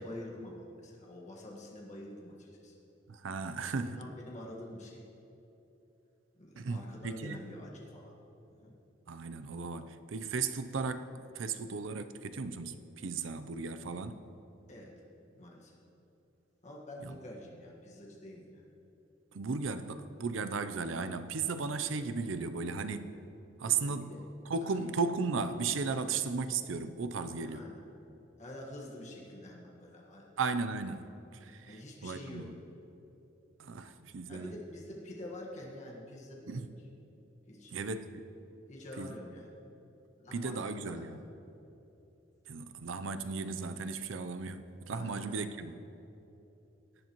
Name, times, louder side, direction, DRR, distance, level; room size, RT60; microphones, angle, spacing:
voice 1, 0.0-2.7 3.6-5.0 6.4-8.1 8.6-8.8 14.7-14.9 15.4-15.8 16.6-18.6 23.6-24.2 24.6-24.9 26.0-26.1 27.4-27.8 28.4-30.3 31.6-32.5 34.3-36.7 37.5-37.7 38.7-39.5 40.2-41.2 44.9-45.5, left 1 dB, 40° left, -3 dB, 1.6 m, -47 dB
voice 2, 3.1-4.0 6.6-7.4 9.1-14.2 17.0-17.2 19.3-23.2 23.6-24.1 24.5-27.7 30.4-31.0 31.3-32.5 33.6-34.5 36.5-36.7 37.7-38.1 39.0-39.2 40.3-41.2 42.5-45.7, right 4 dB, 85° right, 10 dB, 0.6 m, -35 dB
17.5 x 10.0 x 3.0 m, 3.0 s
head